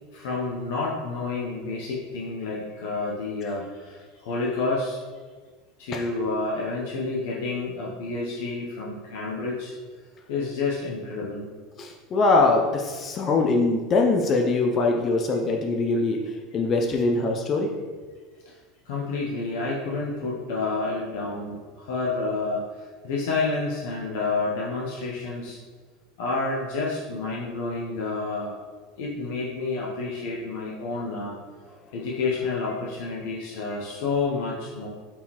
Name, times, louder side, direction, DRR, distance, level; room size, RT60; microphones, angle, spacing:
voice 1, 0.1-5.0 5.8-9.7 10.3-11.5 18.5-18.6 18.9-25.6 26.2-28.6 29.0-31.4 31.9-34.9, left 3 dB, 75° left, -4 dB, 0.7 m, -29 dB
voice 2, 11.8-16.2 16.5-17.7, left 3 dB, 30° left, 1 dB, 0.4 m, -22 dB
4.3 x 3.6 x 2.9 m, 1.4 s
supercardioid pair, 145°, 0 cm